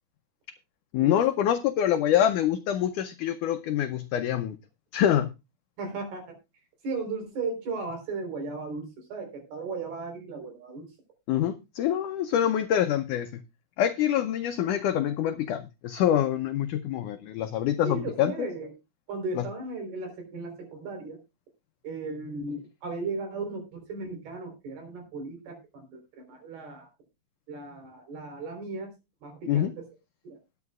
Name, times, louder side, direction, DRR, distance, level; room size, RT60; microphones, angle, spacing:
voice 1, 0.9-4.6 4.9-5.3 11.3-13.4 13.8-18.5 19.4-19.5 29.5-29.7, left 10 dB, 85° left, 9 dB, 1.8 m, -25 dB
voice 2, 5.8-6.4 6.8-10.9 17.8-18.7 19.1-21.2 21.8-26.9 27.5-28.9 29.2-29.8 30.3-30.4, right 3 dB, 75° right, 4 dB, 5.9 m, -36 dB
20.0 x 8.9 x 2.4 m, 0.25 s
omnidirectional pair, 4.5 m